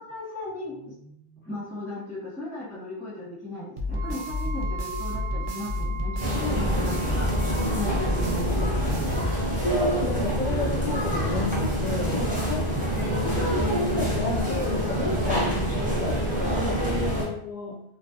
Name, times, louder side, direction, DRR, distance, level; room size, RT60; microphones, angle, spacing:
voice 1, 0.0-9.1 12.3-12.6 12.9-13.4 15.4-15.8 17.1-17.3, left 1 dB, 15° left, -8 dB, 0.8 m, -37 dB
sound 1, 3.8-9.9, left 2 dB, 60° right, 0.6 m, -31 dB
Wind instrument woodwind instrument, 3.9-8.4, right 7 dB, 85° right, 0.8 m, -39 dB
sound 2, 6.2-17.3, equal, 10° right, 0.5 m, -26 dB
voice 2, 9.5-12.7 13.2-15.5 15.9-17.8, left 2 dB, 55° left, -5 dB, 0.5 m, -31 dB
2.4 x 2.2 x 2.7 m, 0.75 s
omnidirectional pair, 1.1 m